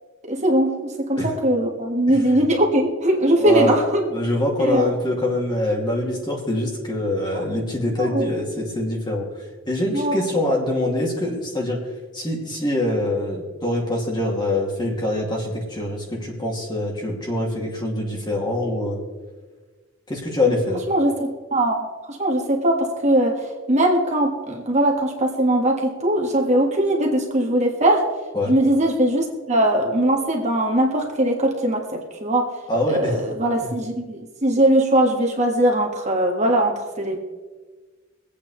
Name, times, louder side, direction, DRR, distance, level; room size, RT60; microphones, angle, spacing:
voice 1, 0.3-4.1 4.6-4.9 7.3-7.4 8.0-8.3 9.9-10.2 20.9-23.4 23.7-28.1 28.5-32.5 32.9-37.2, right 1 dB, 35° right, 1 dB, 1.7 m, -20 dB
voice 2, 3.3-9.3 9.7-11.8 12.1-19.0 20.1-20.8 28.3-28.5 32.7-33.2, left 1 dB, 20° left, -2 dB, 2.6 m, -24 dB
23.5 x 8.7 x 3.3 m, 1.3 s
head